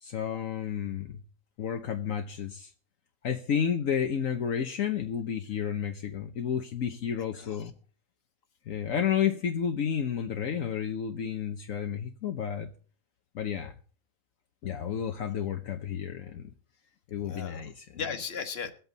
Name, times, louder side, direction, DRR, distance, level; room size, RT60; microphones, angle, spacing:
voice 1, 0.0-1.2 1.6-2.7 3.2-7.7 8.7-12.7 13.3-13.7 14.6-16.4 17.1-17.8, left 8 dB, 70° left, 1.3 m, -31 dB
voice 2, 7.3-7.7 17.2-18.7, left 6 dB, 45° left, 1.6 m, -37 dB
22.0 x 8.2 x 4.0 m
omnidirectional pair, 1.5 m